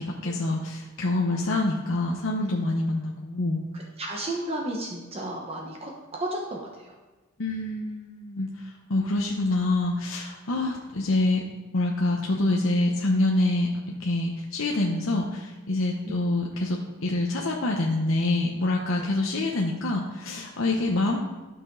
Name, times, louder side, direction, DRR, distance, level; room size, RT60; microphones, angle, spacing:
voice 1, 0.0-3.6 7.4-11.4 11.7-21.4, left 2 dB, 70° left, -1 dB, 0.9 m, -26 dB
voice 2, 4.0-6.9 10.5-10.6 18.9-19.0 20.7-20.8, right 1 dB, 30° right, -1 dB, 1.1 m, -33 dB
11.5 x 6.0 x 3.9 m, 1.2 s
head